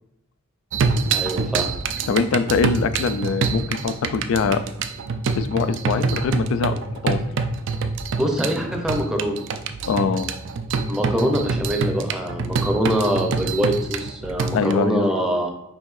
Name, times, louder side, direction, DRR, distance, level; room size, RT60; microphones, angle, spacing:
sound 1, 0.7-14.7, right 4 dB, 65° right, 0.3 m, -26 dB
voice 1, 1.1-1.7 8.2-9.4 10.9-15.5, equal, 5° right, 1 dB, 0.6 m, -24 dB
voice 2, 2.1-4.6 5.4-7.2 9.9-10.4 14.5-15.1, left 5 dB, 70° left, 13 dB, 0.3 m, -23 dB
5.3 x 2.6 x 3.2 m, 0.85 s
head